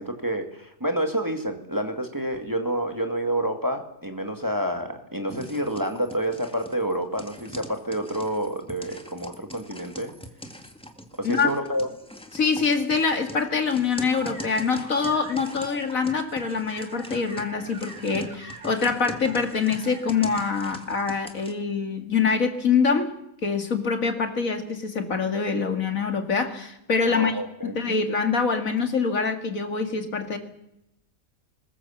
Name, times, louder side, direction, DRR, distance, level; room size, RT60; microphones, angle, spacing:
voice 1, 0.0-10.1 11.2-11.9 27.1-27.8, right 1 dB, 15° right, 5 dB, 2.1 m, -28 dB
sound 1, 5.3-21.5, equal, 5° left, 1.9 m, -42 dB
voice 2, 12.3-23.1 23.4-27.4 27.6-30.4, left 5 dB, 70° left, 6 dB, 2.6 m, -25 dB
sound 2, 14.1-20.6, right 2 dB, 60° right, 3.5 m, -44 dB
21.5 x 20.5 x 7.2 m, 0.83 s
omnidirectional pair, 1.5 m